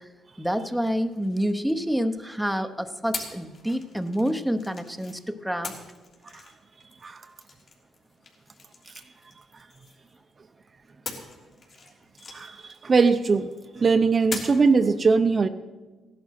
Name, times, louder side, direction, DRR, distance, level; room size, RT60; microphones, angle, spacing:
voice 1, 0.4-5.7, equal, ahead, 8 dB, 0.8 m, -27 dB
sound 1, 0.8-2.3 3.1-5.2 5.6-10.3 11.0-13.5 14.3-14.7, left 4 dB, 55° left, 3.1 m, -42 dB
voice 2, 12.3-13.5 13.7-15.5, right 4 dB, 35° right, 8 dB, 0.7 m, -21 dB
16.0 x 11.0 x 5.8 m, 1.3 s
cardioid pair, 90°, 0 cm